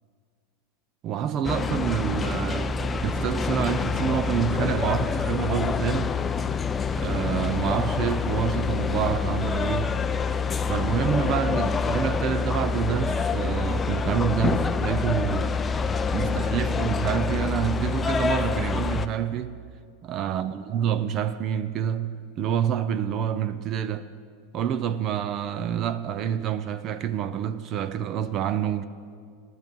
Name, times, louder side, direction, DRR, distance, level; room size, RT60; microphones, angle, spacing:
voice 1, 1.0-6.1 6.9-10.0 10.7-15.5 16.1-19.6 20.0-24.1 24.5-28.8, right 9 dB, 35° right, 0.5 m, -27 dB
sound 1, 1.4-19.1, left 5 dB, 15° left, 0.5 m, -26 dB
14.5 x 12.5 x 5.3 m
supercardioid pair, 145°, 0 cm